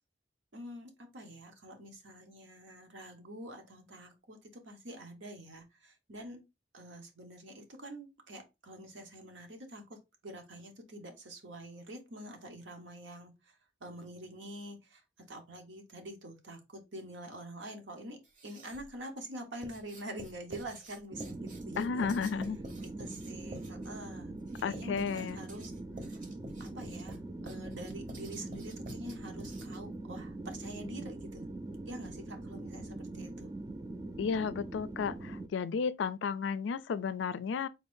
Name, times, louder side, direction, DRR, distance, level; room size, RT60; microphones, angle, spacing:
voice 1, 0.5-6.4 6.7-10.0 10.2-15.0 15.3-22.1 22.8-24.3 24.6-25.7 26.0-26.2 26.6-33.5, right 1 dB, 80° right, 1.1 m, -46 dB
Writing, 18.2-19.0 19.6-29.9, right 1 dB, 45° right, 0.8 m, -49 dB
sound 1, 21.1-35.5, right 2 dB, 20° right, 0.3 m, -43 dB
voice 2, 21.8-22.6 24.6-25.4 34.2-37.7, left 6 dB, 80° left, 0.3 m, -33 dB
3.9 x 2.6 x 3.6 m
head